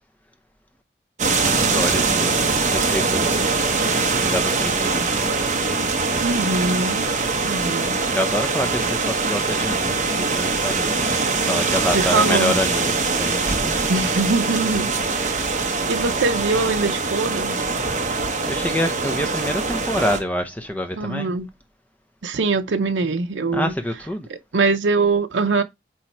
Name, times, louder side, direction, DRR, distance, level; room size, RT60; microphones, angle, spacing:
voice 1, 1.2-3.7 4.1-6.3 8.1-13.9 15.2-15.4 18.1-21.3 23.5-24.3, left 1 dB, 10° left, 0.7 m, -28 dB
sound 1, 1.2-20.2, right 4 dB, 40° right, 1.1 m, -22 dB
voice 2, 6.2-7.0 7.4-8.0 11.9-12.6 13.9-15.4 15.9-17.6 21.0-21.5 22.2-23.7 24.5-25.6, right 3 dB, 80° right, 0.6 m, -22 dB
8.5 x 3.1 x 4.4 m
head